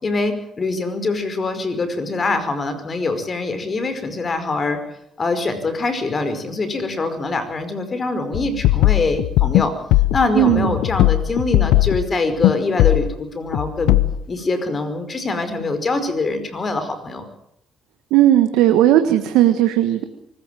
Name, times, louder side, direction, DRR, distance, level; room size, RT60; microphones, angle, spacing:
voice 1, 0.0-4.8 5.2-9.7 10.1-14.0 14.3-17.3, left 3 dB, 40° left, 10 dB, 5.1 m, -24 dB
sound 1, 8.3-12.1 12.4-12.5 12.8-13.1 13.5-14.2, left 16 dB, 80° left, 0.8 m, -18 dB
voice 2, 10.4-10.7 18.1-20.0, right 13 dB, 80° right, 8 dB, 1.5 m, -15 dB
24.5 x 15.0 x 9.2 m, 0.75 s
supercardioid pair, 65°, 0 cm